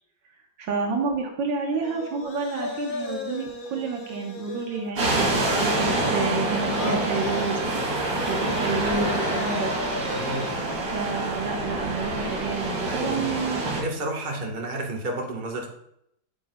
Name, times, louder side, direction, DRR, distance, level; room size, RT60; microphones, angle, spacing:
voice 1, 0.6-7.6 8.3-9.7 10.8-13.6, right 4 dB, 80° right, 1 dB, 1.7 m, -29 dB
sound 1, 1.8-10.5, left 3 dB, 70° left, 0.4 m, -36 dB
sound 2, 5.0-13.8, right 2 dB, 65° right, 2.5 m, -26 dB
voice 2, 10.1-10.5 12.8-13.3 13.6-15.7, right 1 dB, 30° right, 0 dB, 1.2 m, -31 dB
8.6 x 8.1 x 2.2 m, 0.75 s
omnidirectional pair, 2.0 m